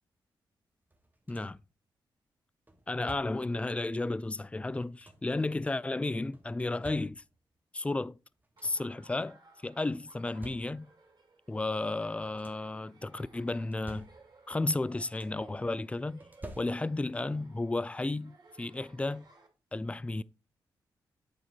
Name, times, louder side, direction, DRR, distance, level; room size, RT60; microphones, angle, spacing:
sound 1, 0.9-1.7 2.7-3.6 4.6-5.4 6.3-7.5 8.1-8.2 8.4-9.0 9.9-11.1 12.0-12.8 13.5-14.6 14.8-15.6 16.2-17.2 18.5-18.6 19.1-19.3, right 1 dB, 20° right, 1.6 m, -51 dB
voice 1, 1.3-1.6 2.9-7.2 7.7-8.2 8.6-10.9 11.5-14.1 14.5-16.2 16.6-19.2 19.7-20.2, left 2 dB, 15° left, 0.4 m, -33 dB
Laughter, 8.6-19.5, right 3 dB, 45° right, 2.7 m, -60 dB
8.3 x 4.4 x 4.3 m
supercardioid pair, 50°, 9 cm